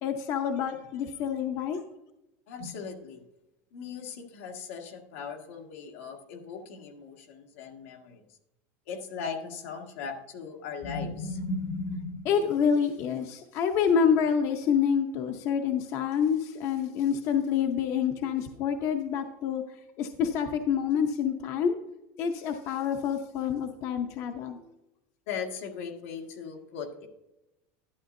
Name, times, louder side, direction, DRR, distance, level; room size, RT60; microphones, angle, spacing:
voice 1, 0.0-1.8 12.3-19.6 20.0-21.8 22.2-24.7, left 7 dB, 40° left, 6 dB, 0.7 m, -27 dB
voice 2, 2.5-3.2 3.7-8.2 8.9-12.2 25.3-27.1, left 4 dB, 85° left, 2 dB, 1.7 m, -37 dB
11.5 x 9.3 x 2.6 m, 0.91 s
supercardioid pair, 165°, 7 cm